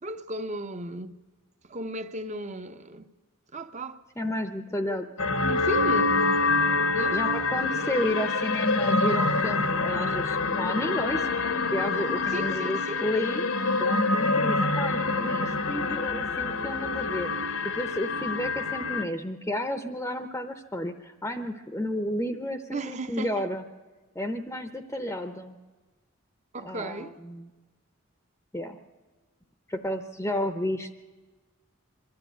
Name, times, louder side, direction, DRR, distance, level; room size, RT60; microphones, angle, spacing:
voice 1, 0.0-1.1 1.6-3.1 3.5-4.0 4.8-5.0 5.4-6.2 6.9-7.2 12.3-13.0 22.7-23.5 26.5-27.2, right 1 dB, 35° right, 0.8 m, -35 dB
voice 2, 4.2-5.1 7.1-11.3 11.7-13.5 13.8-17.5 17.7-23.6 24.1-25.6 26.6-27.5 28.5-28.8 29.7-31.0, left 1 dB, 10° left, 0.8 m, -32 dB
sound 1, 5.2-19.0, left 3 dB, 75° left, 1.3 m, -26 dB
23.5 x 12.5 x 9.3 m
head